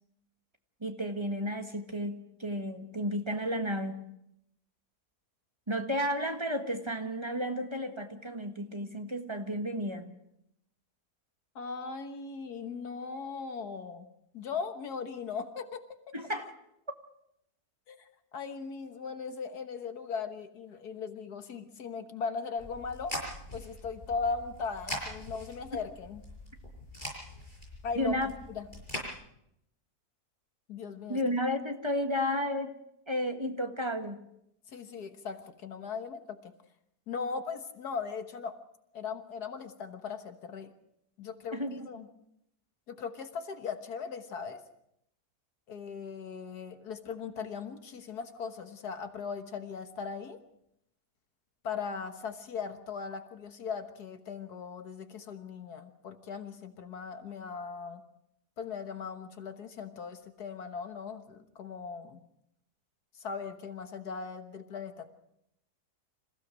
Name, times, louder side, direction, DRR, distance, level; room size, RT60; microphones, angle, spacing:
voice 1, 0.8-4.0 5.7-10.1 16.1-16.5 27.9-28.3 31.1-32.7 33.1-34.2 41.5-41.9, equal, 20° right, 5 dB, 1.6 m, -32 dB
voice 2, 11.6-14.1 14.3-15.8 17.9-23.1 23.5-26.2 27.8-28.2 28.5-28.7 30.7-31.2 34.7-36.5 37.1-38.6 38.9-40.7 41.2-41.6 41.9-42.1 42.9-44.6 45.7-50.4 51.6-58.0 58.6-62.2 63.2-65.1, left 5 dB, 80° left, 8 dB, 1.8 m, -38 dB
sound 1, 22.6-29.1, left 1 dB, 30° left, 6.8 m, -42 dB
27.0 x 16.0 x 6.2 m, 0.78 s
omnidirectional pair, 1.7 m